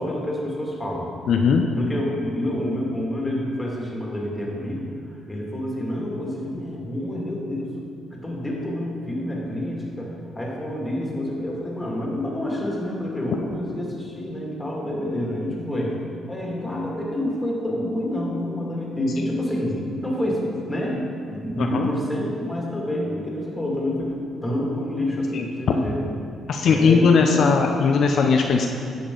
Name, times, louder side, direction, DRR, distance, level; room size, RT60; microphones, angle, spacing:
voice 1, 0.0-1.5 1.8-7.7 8.1-16.0 16.3-21.0 21.3-26.1 26.6-27.5, left 1 dB, 10° left, -3 dB, 2.3 m, -28 dB
voice 2, 1.3-1.6 21.6-21.9 25.3-25.4 26.5-28.7, left 5 dB, 65° left, 2 dB, 0.6 m, -18 dB
10.5 x 6.9 x 3.9 m, 2.4 s
cardioid pair, 90°, 0 cm